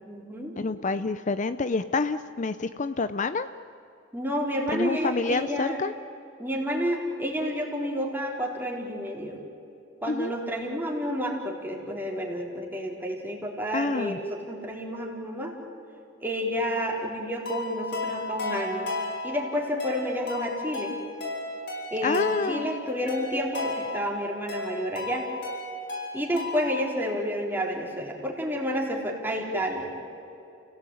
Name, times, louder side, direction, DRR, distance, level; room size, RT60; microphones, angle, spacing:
voice 1, 0.0-0.6 4.1-5.8 6.4-9.4 10.0-15.5 16.2-18.9 19.2-20.9 21.9-25.3 26.1-29.9, equal, 10° right, -1 dB, 4.1 m, -30 dB
voice 2, 0.6-3.5 4.7-5.9 10.1-10.3 13.7-14.2 22.0-22.7, left 3 dB, 40° left, 12 dB, 0.6 m, -28 dB
sound 1, 17.4-26.8, left 2 dB, 65° left, 7.5 m, -34 dB
30.0 x 17.5 x 9.2 m, 2.8 s
head